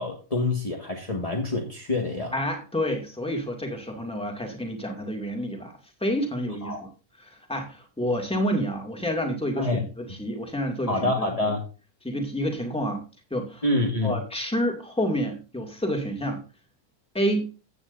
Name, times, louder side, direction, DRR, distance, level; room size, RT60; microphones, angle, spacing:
voice 1, 0.0-2.3 6.6-6.8 9.6-9.8 10.9-11.6 13.6-14.2, left 2 dB, 25° left, -1 dB, 1.8 m, -26 dB
voice 2, 2.3-5.7 6.0-6.9 7.2-11.5 12.0-13.0 13.3-13.6 14.0-16.4 17.1-17.5, equal, 5° left, 1 dB, 2.3 m, -29 dB
15.0 x 9.3 x 2.6 m, 0.33 s
omnidirectional pair, 1.6 m